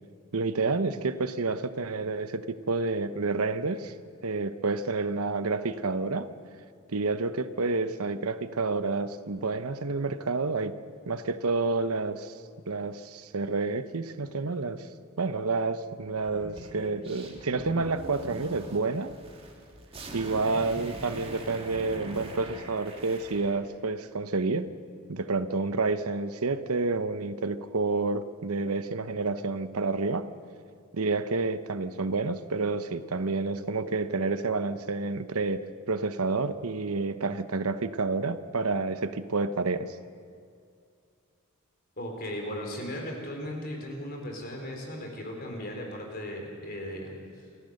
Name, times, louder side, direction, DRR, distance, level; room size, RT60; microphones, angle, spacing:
voice 1, 0.3-3.9 4.2-6.3 6.9-10.8 11.1-12.3 12.7-14.9 15.2-19.1 20.1-24.7 25.1-30.3 30.9-39.9, right 3 dB, 85° right, 12 dB, 0.9 m, -29 dB
sound 1, 16.2-23.6, right 1 dB, 25° right, 2.3 m, -43 dB
voice 2, 42.0-47.1 47.4-47.5, equal, 45° left, 1 dB, 4.4 m, -37 dB
28.0 x 14.5 x 6.6 m, 2.3 s
head